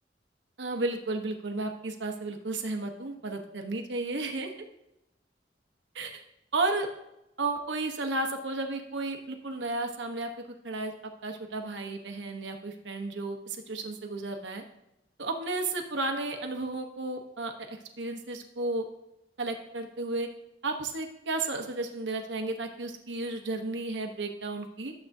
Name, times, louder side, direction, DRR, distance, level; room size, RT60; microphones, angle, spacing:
voice 1, 0.6-4.5 5.9-6.2 6.5-6.9 7.4-10.3 10.6-10.9 11.2-14.6 15.2-18.8 19.4-20.3 20.6-24.9, right 2 dB, 90° right, 4 dB, 1.0 m, -33 dB
12.0 x 7.6 x 2.7 m, 0.86 s
head